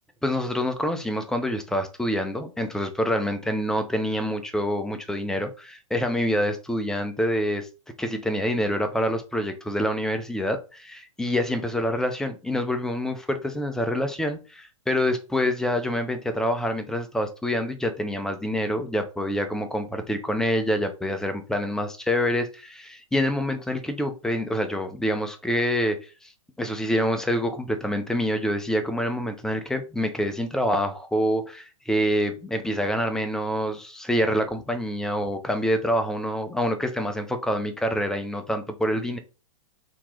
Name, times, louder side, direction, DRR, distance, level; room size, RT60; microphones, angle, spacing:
voice 1, 0.2-7.7 8.0-26.0 26.6-39.2, equal, 5° left, 0.5 m, -26 dB
3.8 x 2.9 x 3.0 m
hypercardioid pair, 120°, 18 cm